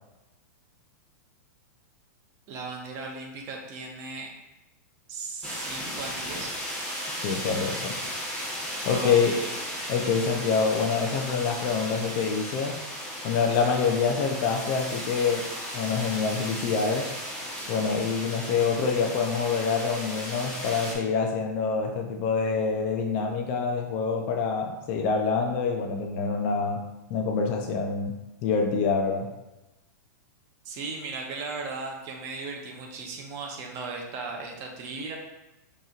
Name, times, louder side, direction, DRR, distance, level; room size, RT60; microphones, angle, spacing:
voice 1, 2.5-4.3 5.1-6.6 8.9-9.6 30.6-35.2, right 3 dB, 35° right, 1 dB, 0.7 m, -37 dB
sound 1, 5.4-20.9, equal, 10° left, 0.9 m, -35 dB
voice 2, 7.2-7.9 8.8-9.3 9.9-12.8 13.2-15.5 15.7-17.1 17.7-26.8 27.1-28.2 28.4-29.3, left 5 dB, 40° left, 2 dB, 0.5 m, -26 dB
5.5 x 3.0 x 2.4 m, 1.0 s
supercardioid pair, 155°, 10 cm